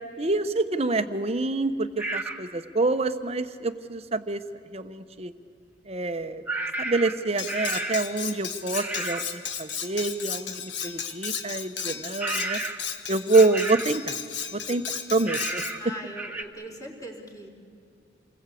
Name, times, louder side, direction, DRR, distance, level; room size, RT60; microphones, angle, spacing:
voice 1, 0.2-4.4 4.7-5.3 5.9-6.4 6.8-12.6 13.1-14.2 14.5-14.8 15.1-15.6, right 3 dB, 35° right, 10 dB, 1.1 m, -26 dB
sound 1, 2.0-2.4 6.5-8.2 8.7-9.3 12.2-12.9 13.3-14.0 15.3-15.9 16.2-16.4, right 2 dB, 10° right, 1.6 m, -32 dB
Cutlery silverware, 7.4-15.8, left 7 dB, 75° left, 1.7 m, -34 dB
voice 2, 15.8-17.5, right 1 dB, 20° left, 0 dB, 4.2 m, -40 dB
28.5 x 21.0 x 8.5 m, 2.3 s
head